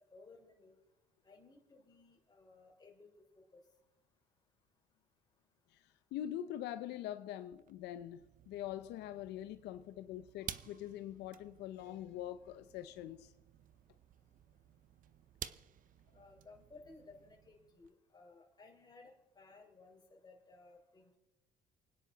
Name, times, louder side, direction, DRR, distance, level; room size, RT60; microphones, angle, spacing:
voice 1, 0.1-0.7 1.2-3.6 16.1-21.2, left 3 dB, 25° left, 0 dB, 4.3 m, -59 dB
voice 2, 6.1-13.3, left 12 dB, 85° left, 11 dB, 0.7 m, -44 dB
sound 1, 7.4-17.9, right 10 dB, 55° right, 0.8 m, -53 dB
29.0 x 9.8 x 4.0 m, 1.0 s
cardioid pair, 110°, 17 cm